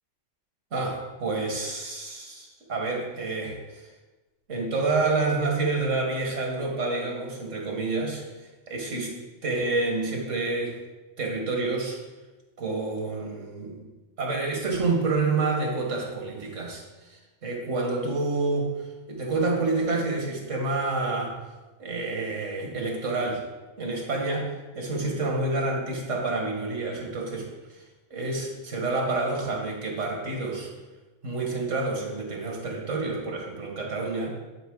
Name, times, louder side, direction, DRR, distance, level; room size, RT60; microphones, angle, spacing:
voice 1, 0.7-3.9 4.5-8.2 8.7-9.2 9.4-10.8 11.2-12.0 12.6-13.9 14.2-18.7 19.1-21.4 21.8-23.4 23.8-27.5 28.1-30.7 31.2-34.3, right 3 dB, 70° right, 0 dB, 2.0 m, -28 dB
11.5 x 5.4 x 3.8 m, 1.2 s
omnidirectional pair, 1.3 m